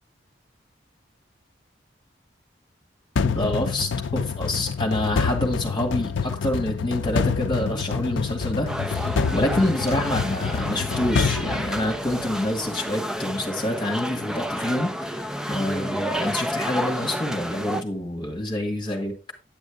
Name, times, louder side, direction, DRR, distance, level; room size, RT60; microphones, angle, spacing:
sound 1, 3.2-12.3, left 5 dB, 80° left, 0.4 m, -27 dB
voice 1, 3.2-19.1, left 1 dB, 25° left, 3 dB, 1.9 m, -27 dB
sound 2, 8.7-17.8, equal, 5° right, 0.4 m, -30 dB
9.4 x 8.8 x 3.5 m, 0.27 s
head